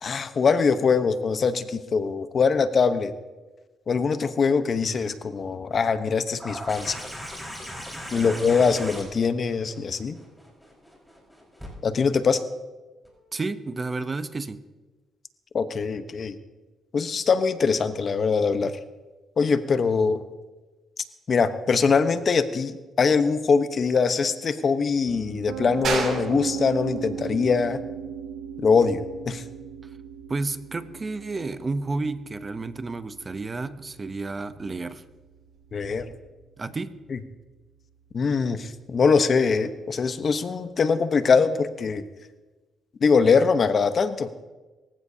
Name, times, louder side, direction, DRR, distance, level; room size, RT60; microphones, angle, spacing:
voice 1, 0.0-3.1 3.9-7.0 8.1-10.2 11.8-12.5 15.5-16.4 16.9-18.7 19.4-20.2 21.3-27.8 28.6-29.0 29.2-29.4 35.7-36.1 37.1-37.2 38.1-42.0 43.0-44.4, left 5 dB, 45° left, 10 dB, 1.0 m, -22 dB
sound 1, 6.4-11.7 13.1-13.2, equal, ahead, 4.9 m, -39 dB
voice 2, 8.1-8.4 13.3-14.6 30.3-35.0 36.6-37.0, right 3 dB, 30° right, 12 dB, 0.8 m, -31 dB
Piano, 25.1-37.0, right 7 dB, 85° right, 1.9 m, -38 dB
sound 2, 25.8-36.1, right 3 dB, 60° right, 6.3 m, -38 dB
23.5 x 15.0 x 2.8 m, 1.2 s
cardioid pair, 90°, 0 cm